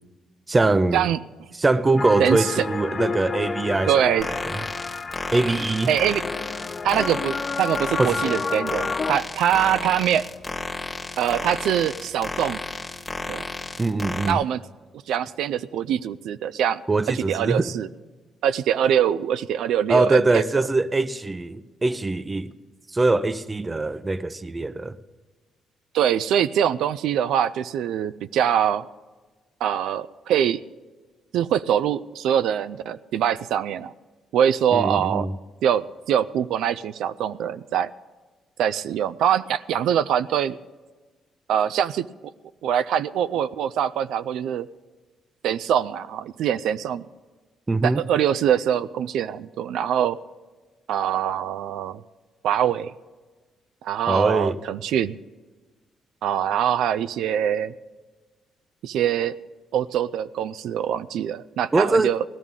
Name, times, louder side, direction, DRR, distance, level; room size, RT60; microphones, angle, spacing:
voice 1, 0.5-1.1 1.6-3.9 4.5-4.6 5.3-5.9 8.0-8.2 13.8-14.4 16.9-17.7 19.9-22.5 22.9-25.0 34.7-35.3 47.7-48.0 54.1-54.6 61.7-62.1, right 2 dB, 20° right, 0.6 m, -22 dB
sound 1, 2.0-9.2, left 4 dB, 35° left, 0.6 m, -30 dB
voice 2, 3.9-4.3 5.9-6.2 6.8-10.3 11.2-12.6 13.3-13.4 14.2-14.6 15.1-16.8 17.3-17.9 18.4-20.4 25.9-28.9 29.6-30.6 31.3-33.9 34.3-35.3 35.6-37.9 38.6-40.6 41.5-42.1 42.6-44.7 45.4-47.0 47.8-50.2 50.9-52.0 52.4-52.9 53.8-55.2 56.2-57.7 58.8-59.4 59.7-62.2, right 9 dB, 80° right, 0.3 m, -23 dB
sound 2, 4.2-14.3, left 2 dB, 15° left, 1.4 m, -33 dB
18.0 x 12.5 x 3.7 m
cardioid pair, 90°, 0 cm